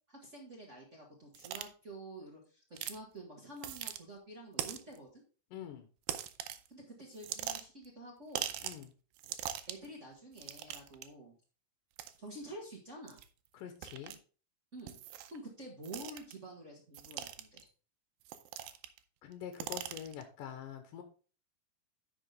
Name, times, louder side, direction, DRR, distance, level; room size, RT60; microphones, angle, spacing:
voice 1, 0.1-5.2 6.7-8.5 9.7-11.3 12.2-13.2 14.7-15.0 15.3-17.6, right 1 dB, 40° right, -1 dB, 1.0 m, -49 dB
sound 1, 1.3-1.7 2.8-3.0 3.6-4.0 4.6-5.0 6.1-6.7 7.1-7.9 8.3-8.8 9.2-9.9 10.4-11.0 12.0-12.1 13.1-13.3 13.8-14.2 14.9-15.4 15.8-16.3 16.9-17.6 18.3-19.0 19.3-20.2, right 12 dB, 80° right, 2.4 m, -41 dB
voice 2, 5.5-5.9 8.6-8.9 13.5-14.2 19.2-21.0, left 9 dB, 70° left, 6 dB, 2.4 m, -45 dB
9.9 x 6.0 x 3.5 m, 0.36 s
omnidirectional pair, 4.3 m